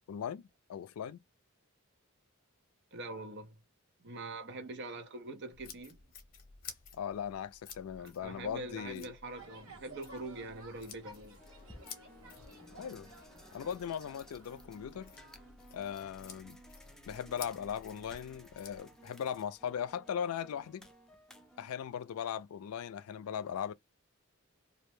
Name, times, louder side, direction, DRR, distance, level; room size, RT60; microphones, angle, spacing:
voice 1, 0.1-1.2 6.9-9.1 12.8-13.1 13.5-15.1 15.7-16.6 17.1-20.9 21.6-23.7, left 8 dB, 90° left, 0.3 m, -39 dB
voice 2, 2.9-3.6 4.0-6.0 8.0-11.4, right 2 dB, 55° right, 0.8 m, -44 dB
sound 1, 5.5-18.8, left 6 dB, 45° left, 0.8 m, -53 dB
sound 2, 9.2-15.5, right 2 dB, 85° right, 1.4 m, -55 dB
sound 3, 11.1-21.7, equal, 5° left, 0.4 m, -57 dB
2.5 x 2.1 x 3.0 m
head